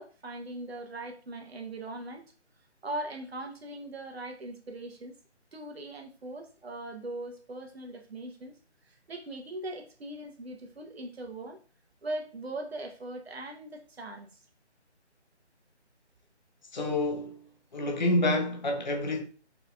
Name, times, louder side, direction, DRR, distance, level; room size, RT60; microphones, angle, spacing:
voice 1, 0.0-2.2 2.8-5.1 5.5-8.5 8.9-11.6 12.0-14.4, right 1 dB, 60° right, 1.1 m, -40 dB
voice 2, 16.7-17.4 17.7-19.2, left 1 dB, 40° left, 0.7 m, -28 dB
4.5 x 3.9 x 2.6 m
figure-of-eight pair, 160°, 35 cm